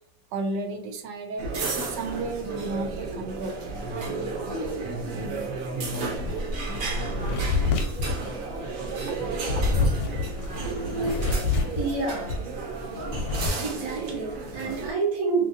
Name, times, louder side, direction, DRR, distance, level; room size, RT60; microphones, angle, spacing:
voice 1, 0.3-1.5 1.8-3.6, right 2 dB, 80° right, 4 dB, 1.3 m, -32 dB
sound 1, 1.4-14.9, right 3 dB, 60° right, 0.9 m, -33 dB
sound 2, 6.1-12.4 12.7-13.5, left 3 dB, 70° left, 1.0 m, -28 dB
voice 2, 10.6-11.4 11.8-12.4 13.6-15.5, right 3 dB, 45° right, -2 dB, 0.4 m, -29 dB
2.8 x 2.8 x 2.6 m, 0.67 s
omnidirectional pair, 2.0 m